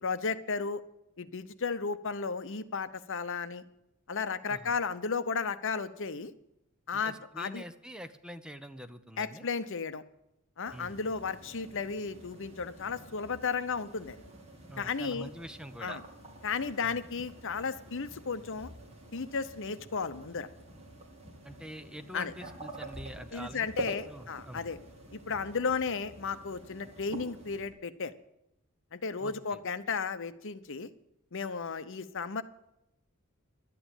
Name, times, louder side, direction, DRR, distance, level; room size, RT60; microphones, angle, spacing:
voice 1, 0.0-0.8 1.2-3.6 4.1-6.3 6.9-7.6 9.2-10.0 10.6-14.2 14.8-15.3 15.8-16.0 16.4-18.7 19.1-20.5 22.1-22.3 23.3-24.8 25.1-28.1 28.9-30.9 31.3-32.4, left 5 dB, 60° left, 13 dB, 0.8 m, -34 dB
voice 2, 6.9-9.5 10.7-11.0 14.7-16.0 16.8-17.0 21.4-24.7 29.2-29.6, equal, 5° right, 10 dB, 0.7 m, -46 dB
sound 1, 10.6-27.7, right 1 dB, 30° right, 2.7 m, -47 dB
12.5 x 9.4 x 9.1 m, 0.83 s
head